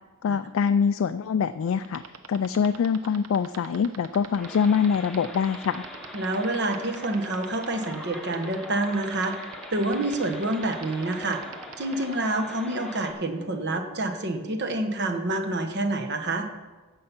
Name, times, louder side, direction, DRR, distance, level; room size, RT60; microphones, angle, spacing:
voice 1, 0.2-2.0 2.3-5.9, left 6 dB, 60° left, 10 dB, 0.3 m, -24 dB
sound 1, 1.8-12.1, right 7 dB, 75° right, 0.8 m, -42 dB
sound 2, 4.4-13.1, left 1 dB, ahead, 1.0 m, -42 dB
voice 2, 6.1-9.3 9.7-11.4 11.8-16.5, right 2 dB, 50° right, 5 dB, 1.1 m, -27 dB
15.0 x 5.6 x 5.9 m, 1.3 s
head